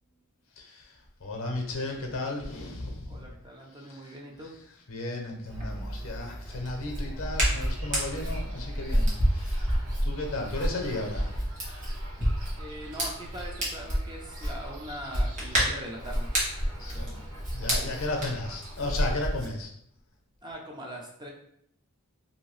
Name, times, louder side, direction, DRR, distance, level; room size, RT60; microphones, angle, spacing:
voice 1, 0.6-0.9 1.2-3.2 3.9-4.0 4.9-9.7 10.0-11.4 16.7-17.2 17.5-19.7, left 2 dB, 65° left, 2 dB, 0.7 m, -34 dB
voice 2, 3.1-4.5 12.6-16.3 16.9-17.4 17.8-18.0 20.4-21.3, equal, 20° right, -1 dB, 0.4 m, -42 dB
Hands, 5.5-19.5, equal, 35° right, 1.2 m, -30 dB
sound 1, 7.4-18.7, right 2 dB, 70° right, 0.8 m, -50 dB
2.7 x 2.7 x 3.1 m, 0.70 s
head